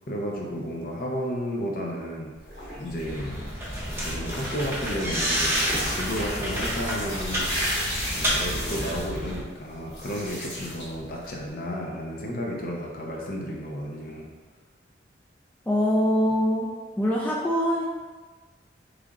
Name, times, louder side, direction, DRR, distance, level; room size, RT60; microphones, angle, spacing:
voice 1, 0.1-2.3 2.8-3.5 4.0-7.5 8.1-14.3, equal, 50° left, -1 dB, 0.6 m, -32 dB
sound 1, 2.3-11.5, equal, 65° left, 1.5 m, -34 dB
sound 2, 3.0-9.4, equal, 15° right, 0.7 m, -30 dB
voice 2, 15.7-16.7 17.0-17.8, equal, 10° left, -5 dB, 0.3 m, -23 dB
3.9 x 3.2 x 2.4 m, 1.4 s
head